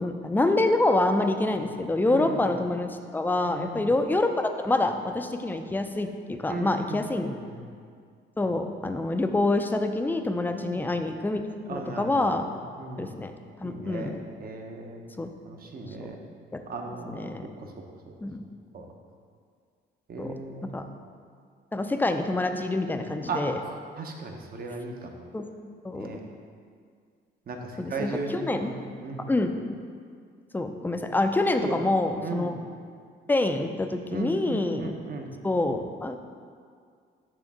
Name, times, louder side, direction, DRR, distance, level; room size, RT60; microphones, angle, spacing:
voice 1, 0.0-7.3 8.4-11.4 11.7-12.4 13.0-13.3 13.6-14.2 15.2-15.3 16.5-16.6 17.1-17.4 18.2-18.5 20.2-20.3 20.7-20.8 21.7-23.6 25.3-25.5 25.8-26.1 27.8-28.7 29.3-29.6 30.5-32.5 33.3-34.9 35.4-36.2, left 2 dB, 10° left, 6 dB, 0.4 m, -26 dB
voice 2, 2.1-2.5 3.4-3.9 6.5-7.7 10.5-10.9 11.7-13.2 13.6-14.1 14.4-15.0 15.4-16.2 16.7-17.3 17.6-17.7 18.7-18.9 20.1-20.8 23.3-23.5 24.0-25.3 25.9-26.2 27.5-29.3 31.6-31.7 32.2-32.5 34.1-35.3, right 3 dB, 50° right, 2 dB, 0.9 m, -37 dB
6.4 x 3.4 x 6.0 m, 2.1 s
cardioid pair, 90°, 20 cm